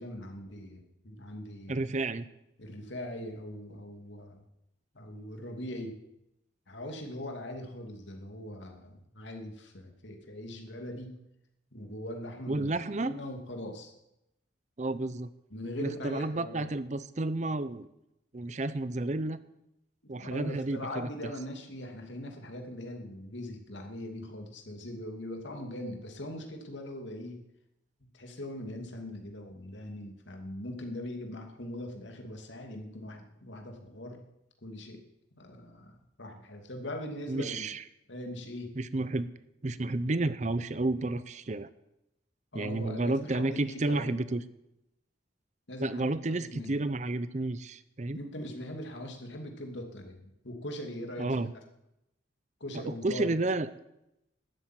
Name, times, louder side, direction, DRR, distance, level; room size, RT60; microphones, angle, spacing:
voice 1, 0.0-1.9 2.6-4.4 4.9-5.9 6.7-11.1 11.7-13.9 15.5-16.7 20.0-27.4 28.1-34.2 34.6-35.0 35.4-37.7 38.1-38.7 42.5-44.2 45.7-46.7 48.1-51.5 52.6-53.3, left 1 dB, 75° left, 3 dB, 2.6 m, -41 dB
voice 2, 1.7-2.3 12.5-13.1 14.8-15.3 15.8-17.9 18.3-19.4 20.1-21.3 37.3-37.8 38.8-39.3 39.6-41.7 42.5-44.4 45.8-48.2 51.2-51.5 52.9-53.7, right 2 dB, 40° right, 15 dB, 0.6 m, -31 dB
12.5 x 8.9 x 9.2 m, 0.85 s
head